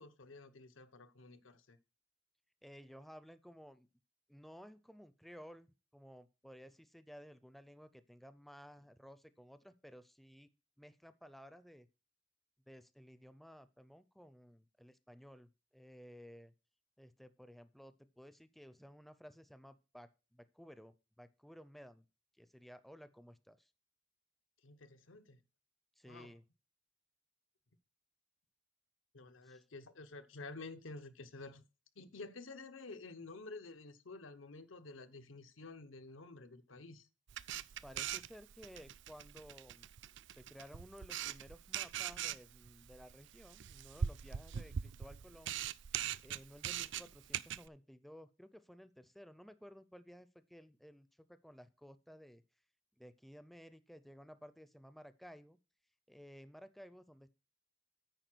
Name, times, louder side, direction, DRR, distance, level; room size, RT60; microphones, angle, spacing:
voice 1, 0.0-1.8 24.6-25.4 26.0-26.4 29.1-31.6 32.0-37.1, left 3 dB, 90° left, 0.9 m, -51 dB
voice 2, 2.6-3.9 4.3-10.5 10.8-11.9 12.7-16.5 17.0-22.0 22.4-23.7 26.0-26.4 29.4-29.6 37.8-39.9 40.3-45.6 46.2-52.4 53.0-55.6 56.1-57.3, equal, ahead, 0.4 m, -56 dB
Camera, 37.3-47.7, right 9 dB, 65° right, 0.4 m, -42 dB
9.1 x 4.8 x 6.0 m
head